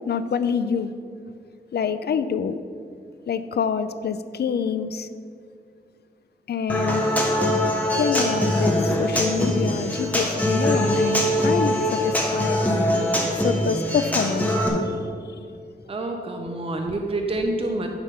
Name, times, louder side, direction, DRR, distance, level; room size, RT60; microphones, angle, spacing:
voice 1, 0.1-0.9 1.7-2.6 3.3-5.1 6.5-7.0 7.9-12.6 13.4-14.5 14.8-15.0, left 6 dB, 65° left, 12 dB, 0.4 m, -26 dB
Human voice / Acoustic guitar, 6.7-14.7, equal, 10° left, 1.1 m, -22 dB
voice 2, 15.9-17.9, right 2 dB, 30° right, 3 dB, 0.6 m, -27 dB
9.5 x 3.6 x 5.7 m, 2.3 s
wide cardioid pair, 125°, 18 cm